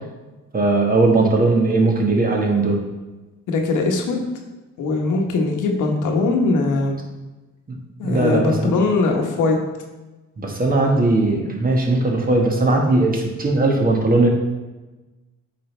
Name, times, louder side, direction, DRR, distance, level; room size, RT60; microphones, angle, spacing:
voice 1, 0.5-2.8 7.7-8.7 10.4-14.3, right 2 dB, 30° right, 0 dB, 1.5 m, -18 dB
voice 2, 3.5-4.2 4.8-7.0 8.0-9.6, left 3 dB, 85° left, 2 dB, 1.2 m, -20 dB
8.5 x 5.1 x 3.3 m, 1.2 s
cardioid pair, 90°, 30 cm